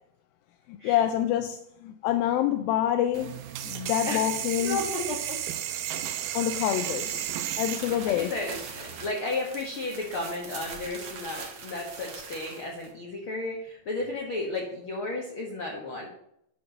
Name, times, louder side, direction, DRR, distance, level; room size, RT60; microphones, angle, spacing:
voice 1, 0.7-3.4 3.6-4.8 6.3-7.3 7.6-8.3, left 12 dB, 80° left, 8 dB, 2.2 m, -27 dB
sound 1, 3.1-9.1, right 11 dB, 85° right, 2.6 m, -34 dB
voice 2, 4.6-5.4 6.5-6.8 7.8-16.1, left 2 dB, 55° left, -1 dB, 1.4 m, -33 dB
sound 2, 7.1-12.9, right 5 dB, 55° right, 1.7 m, -43 dB
11.0 x 4.5 x 6.5 m, 0.76 s
omnidirectional pair, 4.5 m